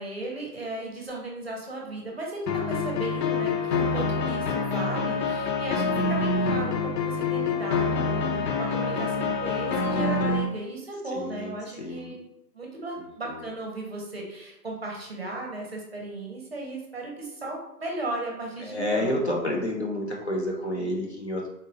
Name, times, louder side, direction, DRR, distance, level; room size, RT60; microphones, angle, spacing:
voice 1, 0.0-12.2 12.5-19.2, right 2 dB, 40° right, -1 dB, 0.6 m, -36 dB
sound 1, 2.5-10.5, left 4 dB, 85° left, 0.7 m, -26 dB
voice 2, 11.1-12.2 13.0-13.4 18.6-21.5, left 1 dB, 45° left, -1 dB, 0.5 m, -30 dB
3.8 x 2.1 x 2.7 m, 0.85 s
hypercardioid pair, 170°, 48 cm